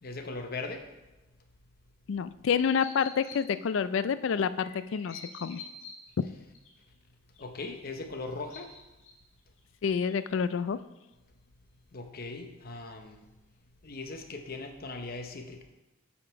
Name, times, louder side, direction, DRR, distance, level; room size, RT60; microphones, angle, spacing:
voice 1, 0.0-0.9 7.4-8.8 11.9-13.3 13.8-15.6, left 3 dB, 45° left, 5 dB, 0.8 m, -39 dB
voice 2, 2.1-5.6 9.8-10.8, left 6 dB, 60° left, 14 dB, 0.3 m, -28 dB
sound 1, 2.6-3.6 4.5-6.1 6.5-6.7 7.3-7.4 8.4-9.1 9.6-9.7 10.1-10.2, left 4 dB, 80° left, 1.5 m, -47 dB
8.4 x 5.1 x 4.6 m, 1.0 s
head